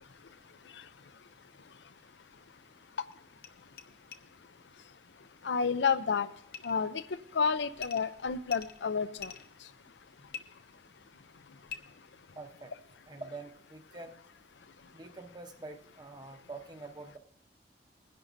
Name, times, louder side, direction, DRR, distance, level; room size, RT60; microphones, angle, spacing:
sound 1, 3.1-3.2 3.4-3.5 3.8-3.9 4.1-4.2 6.5-6.8 7.8-8.1 8.5-9.5 10.3-10.4 11.7-11.8, left 7 dB, 55° left, 0.9 m, -43 dB
voice 1, 5.4-6.3 6.6-7.0 7.3-9.3, left 5 dB, 75° left, 14 dB, 0.6 m, -30 dB
voice 2, 12.3-12.7 13.1-14.2 14.9-17.2, right 3 dB, 25° right, 6 dB, 0.9 m, -46 dB
21.5 x 11.0 x 2.7 m, 0.66 s
head